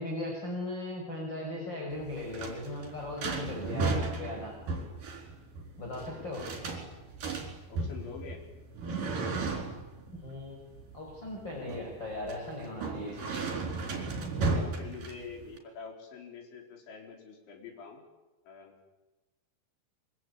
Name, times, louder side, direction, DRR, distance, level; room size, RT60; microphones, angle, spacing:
voice 1, 0.0-4.5 5.8-6.5 10.1-10.6 10.9-13.2, left 1 dB, 25° left, 0 dB, 5.9 m, -38 dB
sound 1, 1.9-15.6, right 3 dB, 50° right, 5.8 m, -35 dB
voice 2, 7.7-8.4 13.0-13.1 14.5-18.0 18.4-18.7, left 5 dB, 85° left, 2 dB, 6.8 m, -46 dB
25.0 x 24.0 x 9.9 m, 1.1 s
omnidirectional pair, 5.2 m